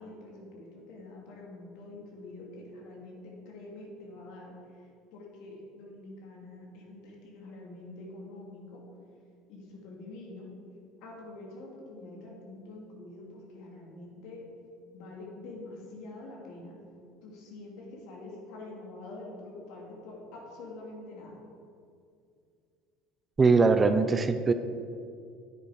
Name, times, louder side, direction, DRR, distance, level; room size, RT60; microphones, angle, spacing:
voice 1, 0.0-8.8 9.5-10.5 11.0-14.5 14.9-16.8 17.2-21.4, left 2 dB, 65° left, -1 dB, 2.6 m, -46 dB
voice 2, 23.4-24.5, right 4 dB, 25° right, 10 dB, 0.6 m, -21 dB
9.8 x 9.5 x 5.0 m, 2.4 s
hypercardioid pair, 70°, 0 cm